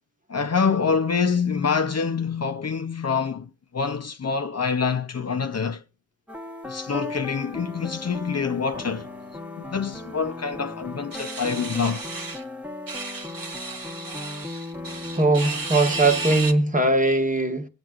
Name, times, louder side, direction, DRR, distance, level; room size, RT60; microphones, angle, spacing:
voice 1, 0.3-5.8 6.6-9.1 9.6-12.1, left 5 dB, 45° left, 0.6 m, -26 dB
sound 1, 6.3-16.6, left 2 dB, 5° right, 1.1 m, -37 dB
sound 2, 11.1-12.4 12.9-16.5, right 3 dB, 65° right, 1.2 m, -33 dB
voice 2, 15.1-17.7, right 2 dB, 20° right, 1.3 m, -20 dB
23.5 x 8.8 x 2.4 m
wide cardioid pair, 115°, 35 cm